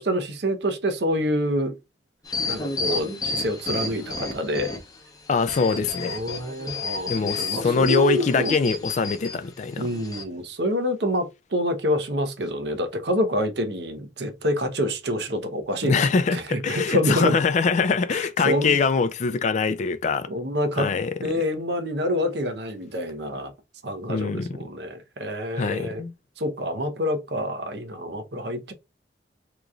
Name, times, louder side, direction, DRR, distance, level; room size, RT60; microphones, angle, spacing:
voice 1, 0.0-1.8 2.4-4.7 6.0-8.6 9.8-17.3 18.1-18.7 20.3-20.9 21.2-23.5 23.8-26.0 26.4-28.7, equal, 65° right, 0.8 m, -27 dB
sound 1, 2.2-5.0 5.4-9.3 9.9-10.2, left 3 dB, 20° left, 0.7 m, -31 dB
voice 2, 5.3-6.2 7.1-9.9 15.8-20.3 20.8-21.4 24.1-24.5 25.6-26.1, left 5 dB, 40° left, 0.3 m, -23 dB
3.7 x 3.0 x 2.4 m
head